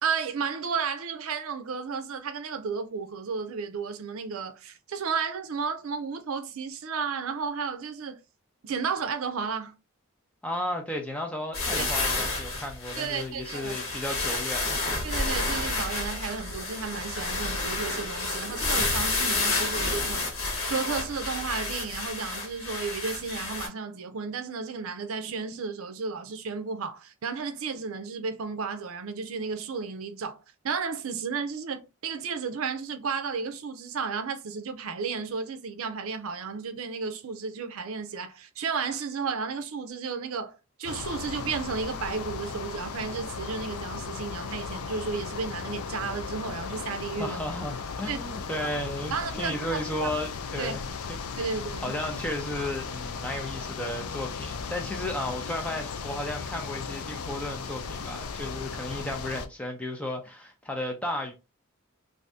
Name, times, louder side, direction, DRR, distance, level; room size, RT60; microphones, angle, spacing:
voice 1, 0.0-8.2 8.6-9.7 11.8-11.9 13.0-13.8 15.0-20.3 20.7-30.4 30.6-47.4 48.1-48.2 48.6-48.7 49.1-50.1 50.6-50.8 51.4-51.9, right 5 dB, 70° right, 0.5 m, -33 dB
voice 2, 10.4-14.8 47.2-50.8 51.1-51.6 51.8-61.3, left 1 dB, 5° left, 0.6 m, -34 dB
sound 1, 11.5-23.7, left 2 dB, 70° left, 1.4 m, -30 dB
sound 2, 40.8-59.5, left 5 dB, 90° left, 0.4 m, -36 dB
2.6 x 2.6 x 3.4 m
head